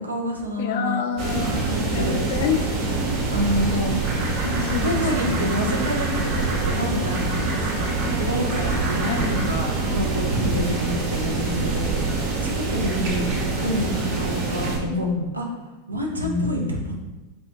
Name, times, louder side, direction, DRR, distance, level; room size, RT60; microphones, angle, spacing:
voice 1, 0.0-1.0 1.6-2.3 3.3-4.0 4.8-7.9 8.1-11.9 12.4-13.2 13.6-15.1 15.3-15.4 15.9-17.0, equal, 85° right, 0 dB, 0.6 m, -28 dB
voice 2, 0.6-2.7 4.4-5.6 9.0-9.6 10.6-12.0 12.8-13.7 14.8-15.3 16.2-16.8, left 5 dB, 55° left, 5 dB, 0.4 m, -29 dB
sound 1, 1.2-14.8, right 3 dB, 50° right, 0.7 m, -25 dB
sound 2, 2.8-9.4, left 5 dB, 35° right, 1.1 m, -36 dB
5.1 x 2.4 x 2.8 m, 1.1 s
figure-of-eight pair, 85°, 0 cm